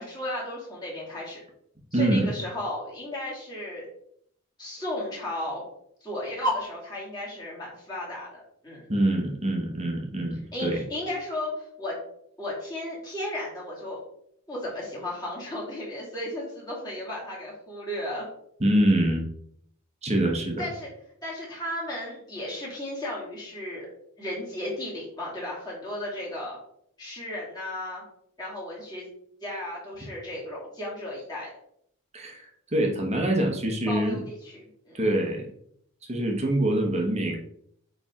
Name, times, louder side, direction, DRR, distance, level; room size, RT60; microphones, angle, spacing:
voice 1, 0.0-1.4 1.9-3.9 4.6-5.6 6.0-8.8 10.5-12.0 12.4-14.0 14.5-18.3 20.6-20.9 21.2-23.9 24.2-26.6 27.0-28.0 28.4-29.1 29.4-31.5 33.9-35.0, left 1 dB, 20° left, -6 dB, 2.4 m, -34 dB
voice 2, 1.9-2.3 8.9-10.8 18.6-19.2 20.0-20.7 32.1-32.4 32.7-34.2 34.9-35.5 36.1-37.4, right 1 dB, 30° right, 1 dB, 1.1 m, -25 dB
8.6 x 3.5 x 3.6 m, 0.69 s
head